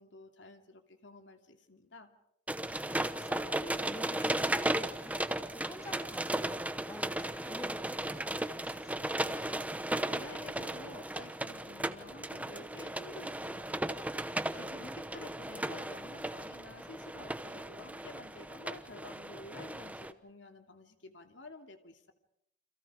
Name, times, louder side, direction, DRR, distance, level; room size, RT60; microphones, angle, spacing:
voice 1, 0.0-2.1 10.0-14.1 14.5-22.1, left 2 dB, 75° left, 6 dB, 2.7 m, -51 dB
sound 1, 2.5-20.1, right 1 dB, 10° right, 0.9 m, -36 dB
voice 2, 2.6-9.2 14.5-14.9, equal, 15° left, 5 dB, 2.3 m, -48 dB
29.5 x 26.5 x 5.0 m, 0.75 s
head